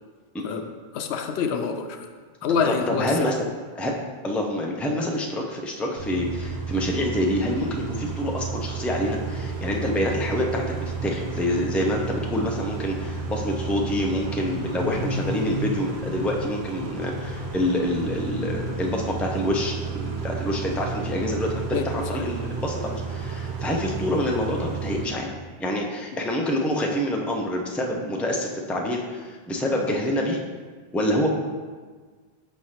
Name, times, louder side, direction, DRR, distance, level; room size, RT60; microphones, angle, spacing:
voice 1, 0.3-0.7 2.6-3.4 3.8-3.9 4.2-25.3 25.6-30.4 30.9-31.3, left 1 dB, ahead, 0 dB, 0.4 m, -27 dB
voice 2, 0.9-2.1 2.4-3.3 21.7-22.3, left 6 dB, 90° left, 6 dB, 0.9 m, -26 dB
Car / Idling / Accelerating revving vroom, 6.0-25.1, right 4 dB, 85° right, 1.0 m, -32 dB
6.1 x 3.3 x 5.6 m, 1.5 s
omnidirectional pair, 1.1 m